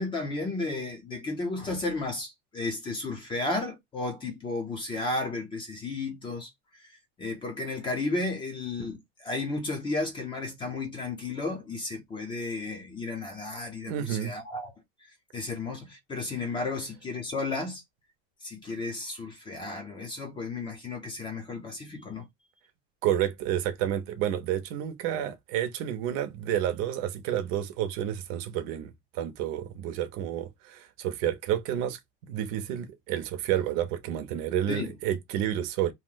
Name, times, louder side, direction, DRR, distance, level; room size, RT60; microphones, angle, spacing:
voice 1, 0.0-6.5 7.2-14.7 15.3-17.8 18.4-22.2 34.7-34.9, left 3 dB, 15° left, 0.6 m, -33 dB
voice 2, 13.9-14.3 23.0-35.9, right 11 dB, 55° right, 0.6 m, -30 dB
2.7 x 2.0 x 3.8 m
cardioid pair, 175°, 30 cm